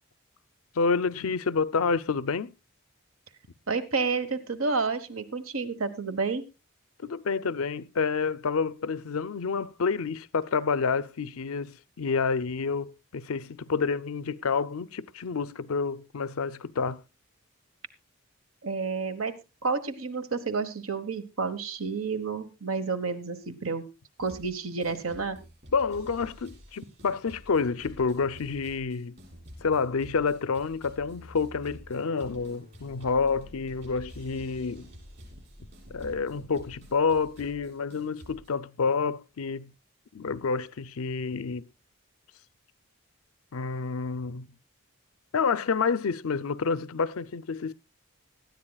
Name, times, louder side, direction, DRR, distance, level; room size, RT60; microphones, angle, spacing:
voice 1, 0.8-2.5 7.0-17.0 25.7-29.2 29.6-34.9 35.9-39.7 40.1-41.6 43.5-44.5 45.3-47.7, left 5 dB, 85° left, 0.6 m, -28 dB
voice 2, 3.7-6.4 18.6-19.3 19.6-23.8 24.2-25.4, right 4 dB, 80° right, 1.3 m, -30 dB
sound 1, 24.2-24.5 24.8-38.5, equal, 50° right, 6.5 m, -49 dB
18.5 x 13.0 x 2.3 m
head